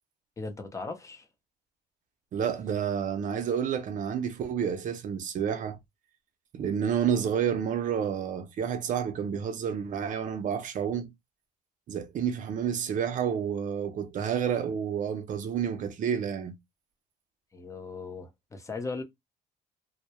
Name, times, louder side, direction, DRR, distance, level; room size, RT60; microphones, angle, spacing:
voice 1, 0.4-1.3 17.5-19.0, left 3 dB, 20° left, 0.6 m, -38 dB
voice 2, 2.3-5.8 6.5-11.1 11.9-16.6, right 8 dB, 50° right, 0.5 m, -30 dB
2.2 x 2.1 x 2.8 m
cardioid pair, 110°, 17 cm